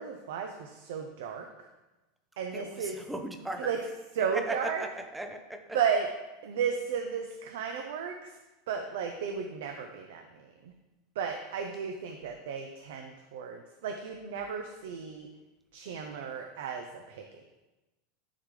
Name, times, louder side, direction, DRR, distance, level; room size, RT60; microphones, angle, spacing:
voice 1, 0.0-1.7 2.4-3.0 3.6-3.8 4.1-4.8 5.7-6.1 6.4-8.4 8.7-10.7 11.2-15.3 15.7-17.2, right 7 dB, 70° right, 4 dB, 0.5 m, -34 dB
voice 2, 2.5-3.7 4.2-5.8, right 1 dB, 5° right, 5 dB, 0.4 m, -37 dB
9.8 x 3.8 x 3.2 m, 1.1 s
supercardioid pair, 175°, 0 cm